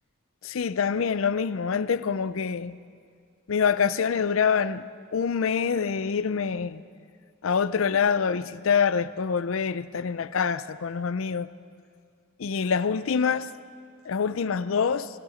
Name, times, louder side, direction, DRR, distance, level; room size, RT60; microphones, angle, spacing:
voice 1, 0.4-2.7 3.5-4.8 5.1-6.8 7.4-11.5 12.4-13.5 14.1-15.1, left 6 dB, 75° left, 0.5 m, -25 dB
16.5 x 15.5 x 5.1 m
head